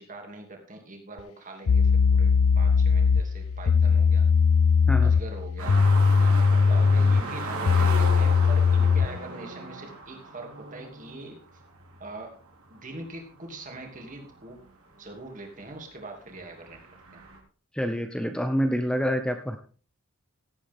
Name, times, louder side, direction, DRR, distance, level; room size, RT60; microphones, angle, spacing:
voice 1, 0.0-4.3 5.0-5.8 6.2-11.6 12.0-12.4 12.7-14.6 15.0-16.8 17.1-17.2, right 2 dB, 35° right, 2 dB, 2.9 m, -42 dB
sound 1, 1.2-1.3 1.7-9.2, left 5 dB, 70° left, 0.4 m, -20 dB
sound 2, 5.6-14.7 15.1-15.2 15.6-17.4, right 3 dB, 75° right, 3.2 m, -37 dB
voice 2, 17.7-19.6, equal, 5° left, 6 dB, 0.8 m, -27 dB
17.0 x 8.6 x 3.7 m, 0.39 s
head